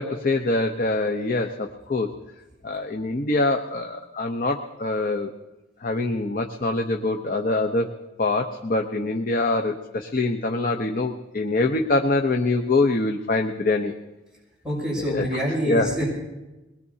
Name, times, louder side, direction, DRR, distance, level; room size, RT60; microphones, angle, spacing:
voice 1, 0.0-2.1 2.6-5.3 5.8-7.9 8.2-13.9 15.0-15.4 15.7-16.0, left 2 dB, 50° left, 3 dB, 0.8 m, -24 dB
voice 2, 14.6-16.0, equal, 5° right, -6 dB, 6.4 m, -26 dB
22.0 x 20.0 x 2.8 m, 1.1 s
head